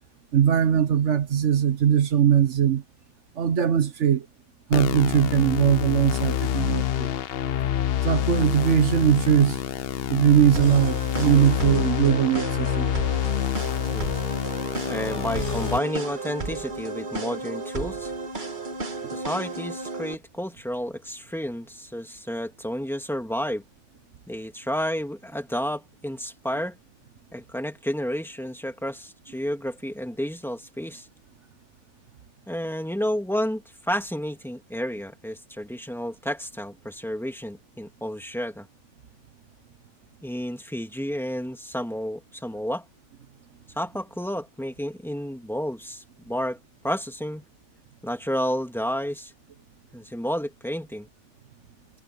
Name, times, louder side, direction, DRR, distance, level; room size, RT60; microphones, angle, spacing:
voice 1, 0.3-2.8 3.4-4.2 4.7-7.1 8.0-9.6 10.1-12.9, right 9 dB, 50° right, 1.2 m, -20 dB
sound 1, 4.7-15.8, left 11 dB, 65° left, 0.6 m, -27 dB
sound 2, 10.6-20.2, right 3 dB, 30° right, 1.7 m, -33 dB
voice 2, 14.8-18.1 19.1-23.6 24.3-26.8 27.3-31.1 32.5-38.7 40.2-42.8 43.8-46.6 46.8-47.4 48.0-49.3 49.9-51.1, equal, ahead, 2.4 m, -31 dB
omnidirectional pair, 1.7 m